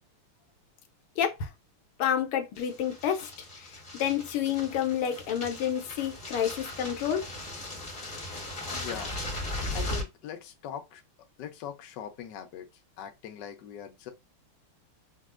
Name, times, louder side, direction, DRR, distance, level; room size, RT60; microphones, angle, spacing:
voice 1, 1.2-1.5 2.0-3.3 3.6-7.3, left 9 dB, 80° left, 1.6 m, -29 dB
sound 1, 2.5-10.0, left 1 dB, 25° left, 0.9 m, -38 dB
voice 2, 8.6-9.2 9.7-11.0 11.4-12.7 13.0-14.1, left 9 dB, 65° left, 1.2 m, -41 dB
5.2 x 2.4 x 2.4 m
omnidirectional pair, 2.4 m